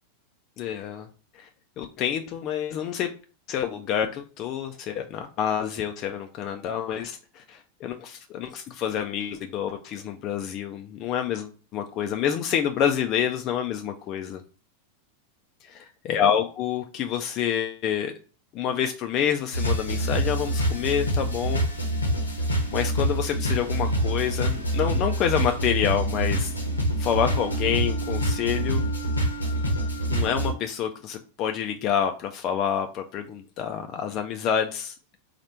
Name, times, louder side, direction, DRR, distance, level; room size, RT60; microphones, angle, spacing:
voice 1, 0.6-1.1 1.3-1.5 1.8-3.1 3.5-14.4 15.6-18.1 18.5-21.6 22.7-26.5 27.0-28.8 30.1-35.2, left 9 dB, 35° left, 5 dB, 0.4 m, -28 dB
sound 1, 19.5-30.5, equal, 80° left, 0.9 m, -26 dB
4.2 x 2.5 x 4.3 m, 0.37 s
figure-of-eight pair, 90°, 0 cm